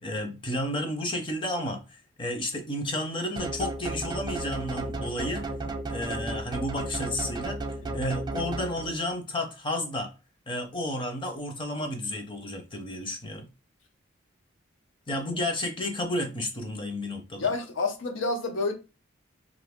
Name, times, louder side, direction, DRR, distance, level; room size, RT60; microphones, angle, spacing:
voice 1, 0.0-5.4 5.9-7.6 7.9-10.1 10.5-13.5 15.1-17.5, left 1 dB, 25° left, 0.7 m, -32 dB
sound 1, 3.4-9.1, right 2 dB, 20° right, 0.4 m, -34 dB
voice 2, 17.4-18.7, left 3 dB, 75° left, 0.7 m, -29 dB
2.6 x 2.6 x 3.5 m
head